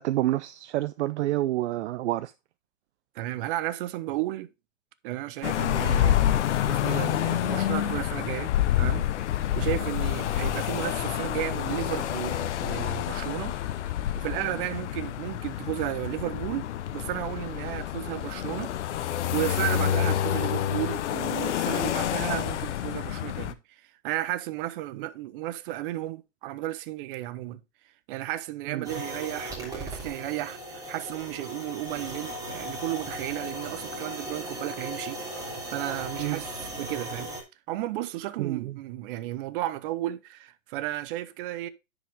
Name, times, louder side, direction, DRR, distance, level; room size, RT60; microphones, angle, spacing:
voice 1, 0.0-2.3 28.6-28.9 36.2-36.4 38.4-38.7, right 15 dB, 65° right, 0.5 m, -28 dB
voice 2, 3.1-4.5 5.0-6.2 6.7-9.1 9.5-13.6 14.2-27.6 28.1-36.5 36.8-37.3 37.7-41.7, right 15 dB, 45° right, 0.8 m, -33 dB
sound 1, 5.4-23.5, left 11 dB, 65° left, 0.9 m, -28 dB
sound 2, 28.8-37.4, right 1 dB, 10° right, 3.0 m, -37 dB
10.0 x 5.0 x 3.5 m
hypercardioid pair, 130°, 38 cm